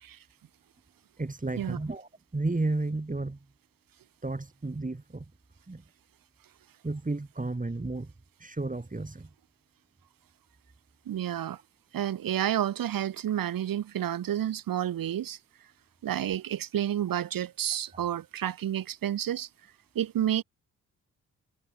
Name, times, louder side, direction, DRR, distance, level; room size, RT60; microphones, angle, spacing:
voice 1, 1.2-3.4 4.2-5.3 5.7-5.8 6.8-8.1 8.4-9.3 17.9-18.1, right 2 dB, 20° right, 4.2 m, -32 dB
voice 2, 11.1-11.6 11.9-15.4 16.0-19.5 19.9-20.4, right 11 dB, 60° right, 1.3 m, -30 dB
supercardioid pair, 50°, 38 cm